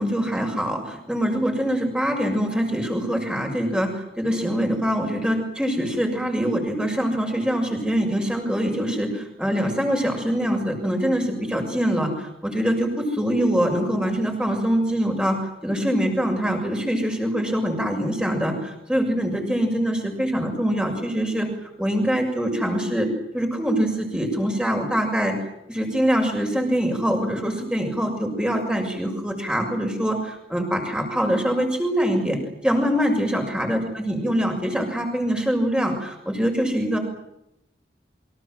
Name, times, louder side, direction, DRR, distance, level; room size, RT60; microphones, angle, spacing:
voice 1, 0.0-15.4 15.6-23.1 23.3-25.3 25.7-37.0, equal, 5° right, 3 dB, 6.6 m, -24 dB
28.5 x 24.5 x 7.8 m, 0.83 s
head